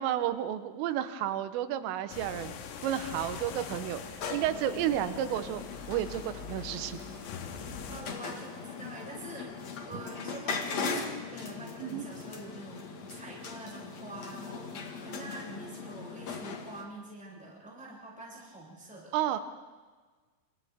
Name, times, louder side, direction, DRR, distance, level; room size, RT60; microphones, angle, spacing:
voice 1, 0.0-2.5 2.8-7.0 9.9-10.0 11.8-12.1 19.1-19.4, right 11 dB, 80° right, 11 dB, 3.6 m, -32 dB
sound 1, 2.1-8.0, left 7 dB, 80° left, 4.0 m, -43 dB
sound 2, 4.2-16.8, left 5 dB, 60° left, 1.8 m, -39 dB
voice 2, 7.9-19.1, right 1 dB, ahead, -5 dB, 6.0 m, -46 dB
29.5 x 27.5 x 3.6 m, 1.4 s
omnidirectional pair, 5.8 m